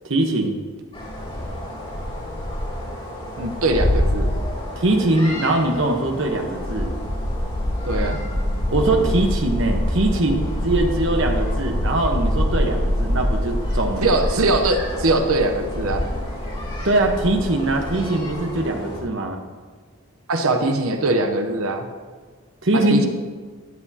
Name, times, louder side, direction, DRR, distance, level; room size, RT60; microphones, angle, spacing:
voice 1, 0.0-0.6 4.8-6.9 8.7-14.1 16.8-19.4 22.6-23.1, right 2 dB, 60° right, 3 dB, 1.1 m, -21 dB
sound 1, 0.9-19.0, equal, 25° left, 2.7 m, -26 dB
voice 2, 3.4-4.3 7.8-8.2 14.0-16.1 20.3-21.9 22.7-23.1, right 2 dB, 75° right, 6 dB, 0.9 m, -21 dB
13.0 x 9.6 x 2.9 m, 1.5 s
head